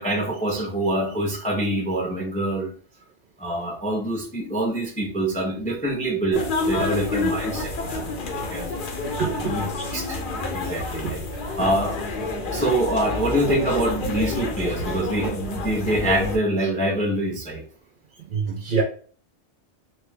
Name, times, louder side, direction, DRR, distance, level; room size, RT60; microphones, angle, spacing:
voice 1, 0.0-2.7 3.4-8.7 9.4-10.2 10.5-11.2 11.6-12.0 12.5-17.6, right 1 dB, 15° left, 1 dB, 0.3 m, -25 dB
sound 1, 6.3-16.4, left 3 dB, 55° left, 0.7 m, -28 dB
voice 2, 9.2-9.5 11.0-11.1 18.3-18.8, right 6 dB, 60° right, 3 dB, 0.6 m, -25 dB
3.0 x 2.3 x 3.2 m, 0.42 s
omnidirectional pair, 1.2 m